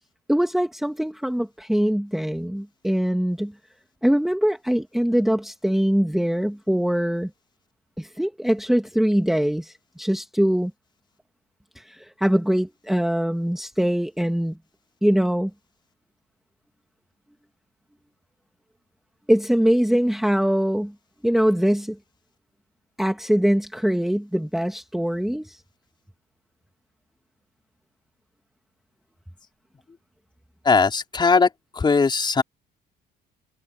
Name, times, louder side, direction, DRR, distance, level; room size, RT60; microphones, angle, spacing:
voice 1, 0.3-3.5 4.0-7.3 8.0-10.7 11.7-14.6 15.0-15.5 19.3-20.9 21.2-22.0 23.0-25.6, equal, ahead, 1.6 m, -22 dB
voice 2, 30.6-31.5 31.7-32.4, left 4 dB, 25° left, 4.2 m, -19 dB
cardioid pair, 110°, 17 cm